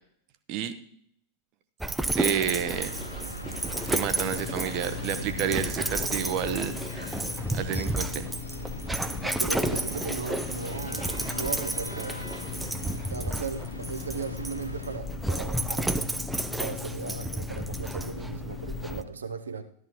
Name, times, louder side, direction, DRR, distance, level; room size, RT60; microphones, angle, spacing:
Dog, 1.8-19.0, right 1 dB, 5° right, 0.6 m, -32 dB
voice 1, 2.1-2.9 3.9-6.7 7.5-8.3, right 9 dB, 40° right, 10 dB, 0.8 m, -29 dB
sound 1, 2.5-15.0, left 1 dB, 85° left, 0.7 m, -41 dB
sound 2, 4.1-19.0, left 10 dB, 45° left, 1.2 m, -40 dB
voice 2, 9.2-12.3 13.1-16.1 16.6-19.6, right 5 dB, 75° right, 7 dB, 0.7 m, -37 dB
14.0 x 12.0 x 3.0 m, 0.66 s
figure-of-eight pair, 90°, 0 cm